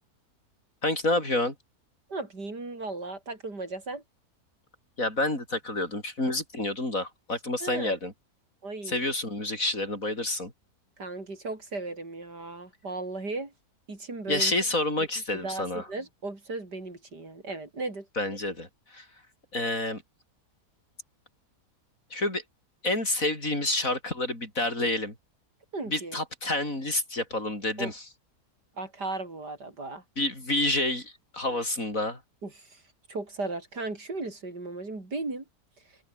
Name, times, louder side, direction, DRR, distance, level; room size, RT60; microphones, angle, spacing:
voice 1, 0.8-1.5 5.0-8.1 8.9-10.5 14.3-15.9 18.2-19.1 19.5-20.0 22.1-22.4 22.8-25.1 25.9-28.1 30.2-32.2, left 2 dB, 55° left, 8.2 m, -29 dB
voice 2, 2.1-4.0 7.6-8.0 8.6-9.0 11.0-13.5 13.9-14.5 15.4-18.1 25.7-26.2 27.8-27.9 28.8-30.0 32.4-32.8 33.1-35.4, right 3 dB, 85° right, 5.9 m, -36 dB
omnidirectional pair, 1.7 m